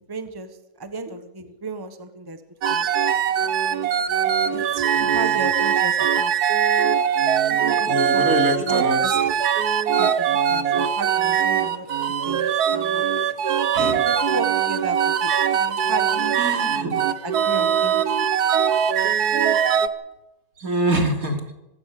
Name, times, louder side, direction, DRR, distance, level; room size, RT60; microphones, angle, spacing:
voice 1, 0.1-2.4 2.7-2.9 4.5-6.3 7.5-8.3 8.6-9.1 10.0-11.9 12.2-13.0 13.8-16.4 17.2-18.0, right 2 dB, 15° right, 8 dB, 1.3 m, -34 dB
sound 1, 2.6-19.9, right 8 dB, 85° right, 1.6 m, -21 dB
voice 2, 7.9-9.0 13.4-14.0 16.3-16.9 20.6-21.4, right 1 dB, 65° right, 3 dB, 3.4 m, -25 dB
25.0 x 16.0 x 6.9 m, 0.97 s
omnidirectional pair, 1.6 m